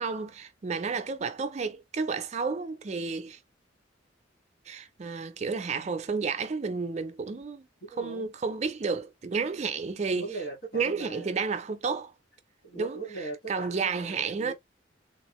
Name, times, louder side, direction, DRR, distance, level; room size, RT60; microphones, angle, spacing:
voice 1, 0.0-3.4 4.7-7.7 8.0-10.3 10.7-12.1 12.7-13.0 13.5-14.5, right 4 dB, 40° right, 0.4 m, -31 dB
voice 2, 7.9-8.3 10.2-11.3 12.6-14.5, right 3 dB, 55° left, 1.8 m, -39 dB
3.5 x 2.4 x 3.0 m
head